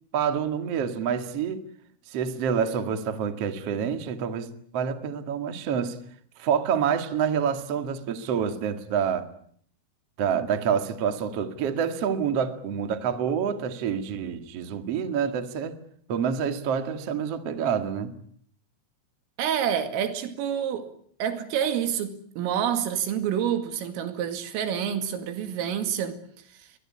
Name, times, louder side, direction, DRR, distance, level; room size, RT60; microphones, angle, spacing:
voice 1, 0.1-1.6 2.1-6.0 6.4-9.3 10.2-15.8 16.1-18.1, right 7 dB, 50° right, 1.9 m, -27 dB
voice 2, 19.4-20.9 21.2-26.2, right 9 dB, 80° right, 4.8 m, -28 dB
23.0 x 22.0 x 9.8 m
omnidirectional pair, 5.9 m